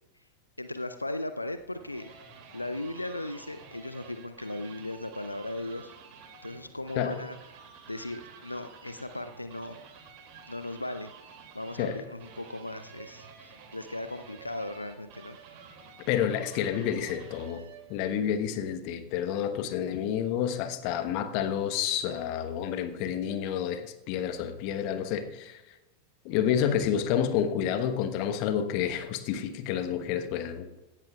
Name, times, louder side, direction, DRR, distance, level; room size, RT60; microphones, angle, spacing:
voice 1, 0.6-2.1 2.5-5.9 6.4-9.8 10.5-15.4, left 1 dB, 85° left, 10 dB, 0.5 m, -37 dB
sound 1, 1.5-18.0, right 6 dB, 45° right, 2.6 m, -51 dB
voice 2, 16.1-17.6 17.9-25.6 26.2-30.7, left 9 dB, 45° left, 9 dB, 1.1 m, -29 dB
17.0 x 13.0 x 2.4 m, 1.0 s
figure-of-eight pair, 90°, 0 cm